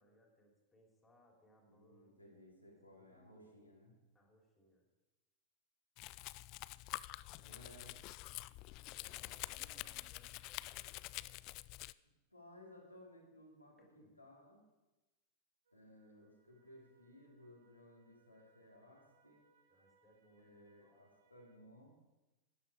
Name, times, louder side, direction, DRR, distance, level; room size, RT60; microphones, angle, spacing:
voice 1, 0.0-2.3 2.9-3.6 4.1-4.9 7.1-7.9 8.9-11.4 13.8-14.1 19.7-21.3, right 1 dB, 10° left, 0 dB, 3.3 m, -70 dB
voice 2, 1.6-3.9 7.4-8.0 12.3-14.6 15.7-19.4 20.4-22.0, left 1 dB, 90° left, -3 dB, 3.1 m, -60 dB
Domestic sounds home sounds, 6.0-11.9, left 19 dB, 40° left, 0.3 m, -47 dB
sound 1, 15.6-21.6, right 4 dB, 65° right, 1.8 m, -75 dB
12.5 x 10.5 x 4.8 m, 1.1 s
figure-of-eight pair, 90°, 0 cm